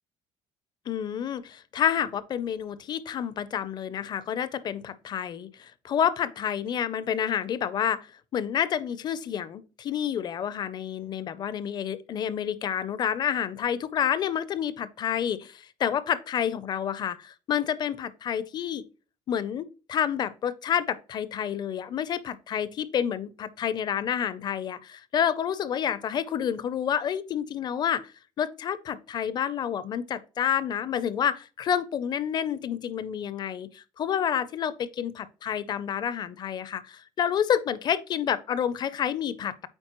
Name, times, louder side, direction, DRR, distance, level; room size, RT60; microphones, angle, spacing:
voice 1, 0.9-8.0 8.3-18.8 19.3-28.1 28.4-39.7, left 9 dB, 35° left, 0.5 m, -29 dB
8.9 x 4.3 x 3.0 m
cardioid pair, 170°, 12 cm